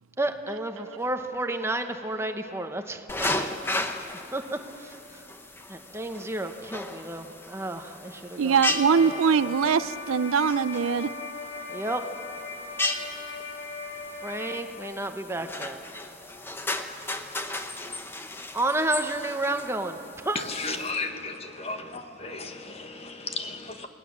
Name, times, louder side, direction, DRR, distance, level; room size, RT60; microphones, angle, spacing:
voice 1, 0.2-3.5 4.0-5.2 5.7-8.6 9.0-9.9 11.7-12.0 14.2-15.8 18.5-20.4, right 2 dB, 10° right, 6 dB, 1.0 m, -32 dB
sound 1, 3.1-20.9, left 2 dB, 10° left, 0.8 m, -36 dB
voice 2, 8.4-11.1, right 6 dB, 85° right, 16 dB, 0.5 m, -22 dB
sound 2, 8.5-14.6, left 3 dB, 80° left, 2.8 m, -38 dB
voice 3, 20.6-23.9, left 3 dB, 30° left, 6 dB, 1.3 m, -35 dB
28.0 x 19.0 x 7.3 m, 2.9 s
head